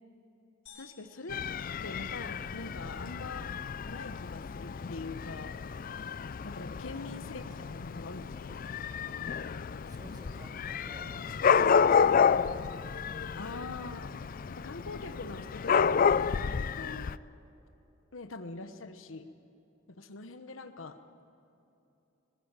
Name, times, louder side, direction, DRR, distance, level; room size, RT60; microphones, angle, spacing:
voice 1, 0.7-1.4 1.8-3.5 3.8-5.6 6.4-7.4 7.7-8.6 13.4-14.1 14.5-17.1 18.1-19.3 19.9-21.0, left 3 dB, 85° left, 9 dB, 1.1 m, -43 dB
sound 1, 0.7-2.6, left 7 dB, 65° left, 4.6 m, -58 dB
Dog / Cat, 1.3-17.2, left 6 dB, 45° left, 0.4 m, -30 dB
voice 2, 7.2-7.7 9.9-13.0, equal, 20° right, 0 dB, 2.8 m, -51 dB
19.0 x 18.5 x 9.0 m, 2.9 s
head